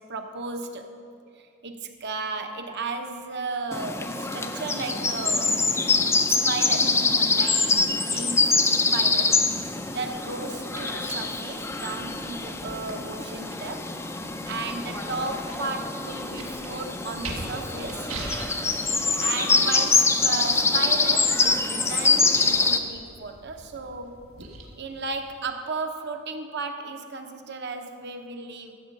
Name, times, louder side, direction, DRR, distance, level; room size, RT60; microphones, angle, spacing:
voice 1, 0.0-0.9 1.4-5.7 6.3-9.4 9.9-18.1 19.2-24.2 24.8-28.7, right 3 dB, 50° right, 5 dB, 0.8 m, -35 dB
sound 1, 3.7-22.8, left 3 dB, 10° left, 0.4 m, -24 dB
sound 2, 8.5-25.4, right 2 dB, 75° right, 1.6 m, -44 dB
13.0 x 7.3 x 5.4 m, 2.4 s
head